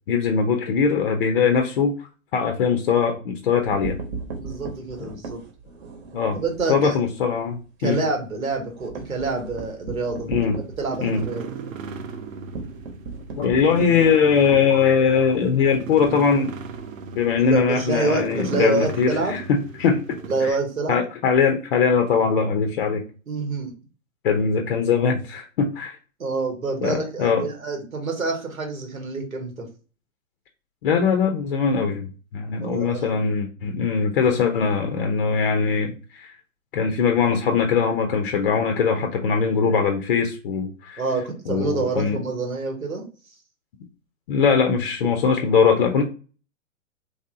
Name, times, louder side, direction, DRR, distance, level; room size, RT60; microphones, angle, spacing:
voice 1, 0.1-1.9 2.3-4.0 6.1-6.4 6.7-8.0 10.3-10.6 11.0-11.3 13.4-16.5 17.1-20.6 20.9-23.0 24.2-26.0 26.8-27.5 30.8-36.3 36.7-41.0 41.5-42.2 44.3-46.0, left 6 dB, 40° left, 5 dB, 0.5 m, -21 dB
sound 1, 3.5-6.7 7.1-7.3 7.6-7.7 8.0-16.8, right 4 dB, 50° right, 1.0 m, -37 dB
voice 2, 4.4-5.4 6.3-7.0 7.8-10.3 10.8-11.5 17.3-19.4 20.3-21.0 23.3-23.7 26.2-29.7 32.6-33.2 41.0-43.1, right 3 dB, 90° right, 2 dB, 1.3 m, -27 dB
sound 2, 10.6-20.5, right 5 dB, 70° right, 0.6 m, -37 dB
3.2 x 2.7 x 2.6 m, 0.36 s
figure-of-eight pair, 120°, 41 cm